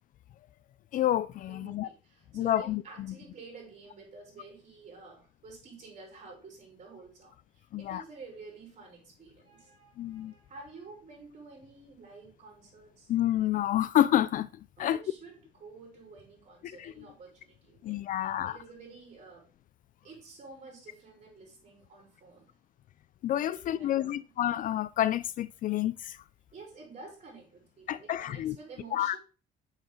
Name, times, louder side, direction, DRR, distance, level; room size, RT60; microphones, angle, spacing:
voice 1, 0.9-1.9 2.3-3.1 7.7-8.0 10.0-10.3 13.1-14.5 14.8-15.0 16.6-16.9 17.8-18.6 23.2-26.2 27.9-28.6 28.9-29.2, left 12 dB, 55° left, 0.4 m, -29 dB
voice 2, 1.4-13.1 14.8-19.5 20.0-22.5 23.5-24.2 26.5-29.2, right 4 dB, 40° right, 4.6 m, -50 dB
6.8 x 6.2 x 3.8 m
cardioid pair, 110°, 17 cm